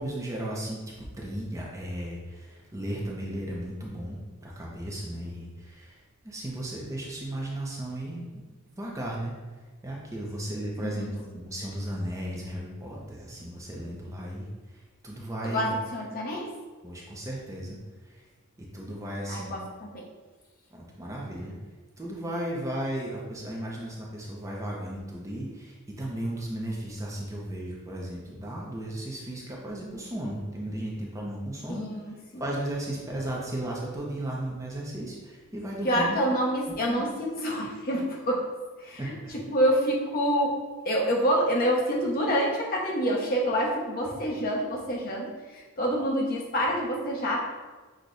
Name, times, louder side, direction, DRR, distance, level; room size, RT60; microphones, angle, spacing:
voice 1, 0.0-8.4 8.8-9.3 9.8-15.7 16.8-17.8 18.0-18.3 18.6-19.5 20.7-21.5 22.0-31.8 32.4-36.2 36.9-37.0 39.0-39.1, right 1 dB, 15° right, -3 dB, 0.6 m, -35 dB
voice 2, 10.8-11.1 15.4-16.5 19.3-20.0 21.4-21.5 31.7-32.4 35.8-38.5 38.8-40.6 40.8-47.5, equal, 40° left, -3 dB, 0.9 m, -27 dB
6.2 x 2.2 x 3.9 m, 1.3 s
head